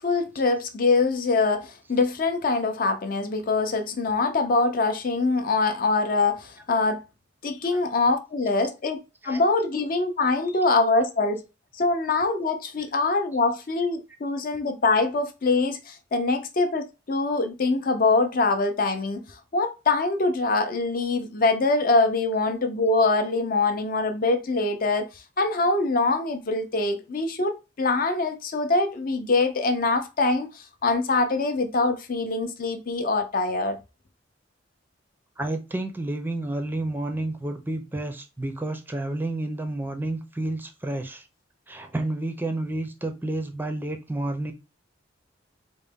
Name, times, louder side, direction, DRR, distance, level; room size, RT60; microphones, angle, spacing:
voice 1, 0.0-7.0 7.4-9.0 9.2-11.4 11.7-25.1 25.4-33.8, left 3 dB, 45° left, 0.6 m, -24 dB
voice 2, 35.4-41.2 41.7-44.5, right 2 dB, 10° right, 0.5 m, -30 dB
3.9 x 2.1 x 3.5 m
head